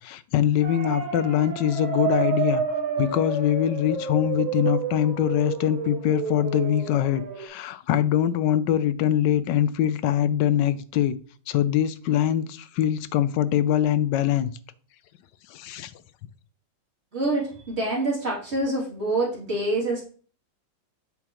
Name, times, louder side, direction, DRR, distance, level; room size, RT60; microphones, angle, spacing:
voice 1, 0.0-2.6 3.0-11.2 11.5-14.5 15.5-15.9, left 10 dB, 75° left, 1.2 m, -23 dB
sound 1, 0.6-7.5, right 6 dB, 80° right, 1.9 m, -29 dB
voice 2, 17.1-20.0, right 2 dB, 35° right, 3.0 m, -26 dB
7.7 x 5.8 x 3.0 m
omnidirectional pair, 2.1 m